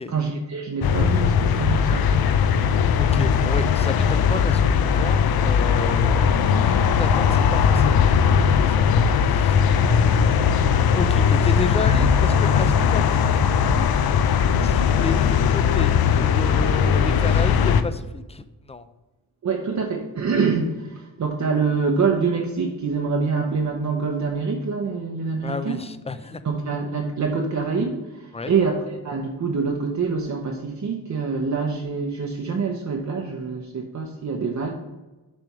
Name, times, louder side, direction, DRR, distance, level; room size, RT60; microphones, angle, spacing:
voice 1, 0.1-2.2 19.4-25.8 26.4-34.7, right 5 dB, 55° right, 1 dB, 0.8 m, -25 dB
sound 1, 0.8-17.8, left 7 dB, 90° left, 0.5 m, -19 dB
voice 2, 2.9-13.9 14.5-18.9 25.4-26.4 28.3-28.5, left 3 dB, 20° left, 12 dB, 0.4 m, -32 dB
7.0 x 3.4 x 5.9 m, 1.1 s
wide cardioid pair, 105°, 35 cm